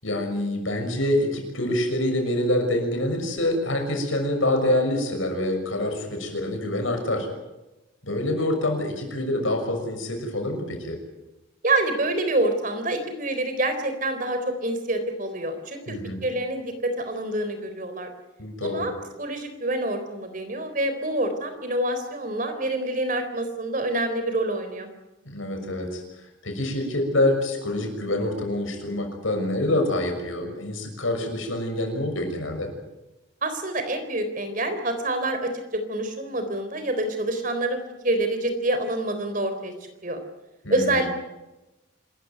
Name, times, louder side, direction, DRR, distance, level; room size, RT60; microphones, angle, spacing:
voice 1, 0.0-7.3 8.0-11.0 15.9-16.2 18.4-18.9 25.2-26.0 26.4-32.7 40.6-41.1, left 1 dB, 85° left, 4 dB, 6.5 m, -26 dB
voice 2, 11.6-15.8 16.2-18.1 18.6-18.9 19.2-24.9 33.4-39.7 40.0-40.2 40.7-41.1, right 1 dB, 40° right, 7 dB, 3.9 m, -27 dB
26.5 x 15.0 x 9.4 m, 1.0 s
head